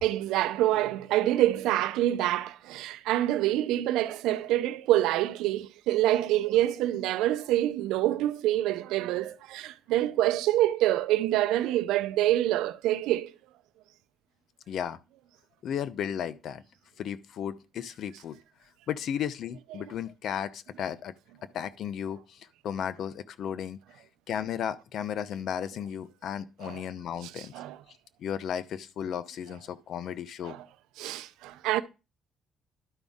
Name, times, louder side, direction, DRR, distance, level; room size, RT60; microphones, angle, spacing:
voice 1, 0.0-13.3 26.6-26.8 27.4-27.8 30.4-30.6 31.0-31.8, right 14 dB, 90° right, 0.5 m, -26 dB
voice 2, 14.7-15.0 15.6-16.6 17.0-18.4 18.9-21.1 21.5-23.8 24.3-27.5 28.2-30.6, left 8 dB, 70° left, 0.7 m, -34 dB
12.0 x 5.2 x 3.6 m
cardioid pair, 85°, 0 cm